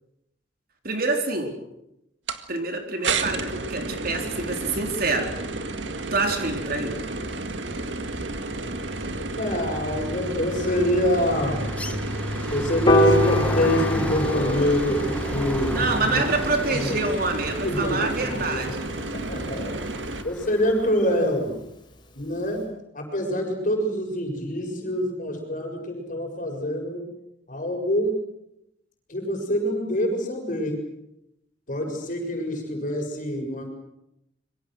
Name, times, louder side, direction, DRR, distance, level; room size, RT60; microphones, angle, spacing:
voice 1, 0.8-1.5 2.5-5.3 6.1-6.9 15.7-18.9, right 3 dB, 55° right, 3 dB, 3.9 m, -26 dB
sound 1, 2.3-2.4 3.0-20.2, right 2 dB, 85° right, 1.9 m, -32 dB
sound 2, 7.1-7.5 7.8-20.9, left 1 dB, 10° left, 1.2 m, -33 dB
voice 2, 9.4-11.6 12.5-16.2 16.7-17.0 17.6-18.7 19.1-19.8 20.2-21.5 22.1-22.6 22.9-27.0 27.5-28.1 29.1-30.8 31.7-33.7, equal, 45° left, 3 dB, 6.7 m, -26 dB
Piano, 12.9-19.2, equal, 25° left, 3.9 m, -26 dB
26.5 x 23.5 x 6.4 m, 0.84 s
head